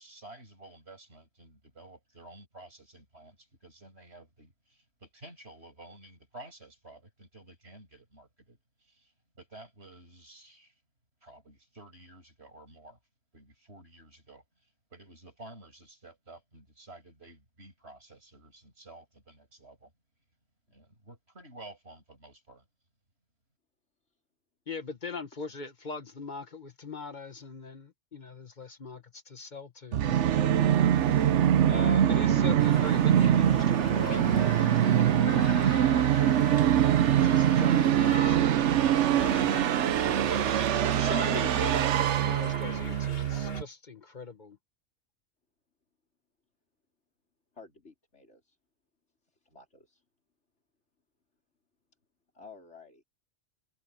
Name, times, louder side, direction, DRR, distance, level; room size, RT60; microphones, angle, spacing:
voice 1, 0.0-10.8 11.2-13.0 13.3-19.9 20.7-22.6, right 2 dB, 65° right, 6.9 m, -52 dB
voice 2, 24.7-30.6 30.9-31.4 31.7-38.7 39.0-40.6 41.0-44.6, left 4 dB, 45° left, 1.4 m, -42 dB
Musical instrument, 29.9-43.6, right 10 dB, 85° right, 1.0 m, -23 dB
sound 1, 32.6-43.6, left 3 dB, 60° left, 1.6 m, -43 dB
voice 3, 47.5-48.6 49.2-50.0 52.3-53.0, left 4 dB, 85° left, 4.6 m, -53 dB
omnidirectional pair, 1.2 m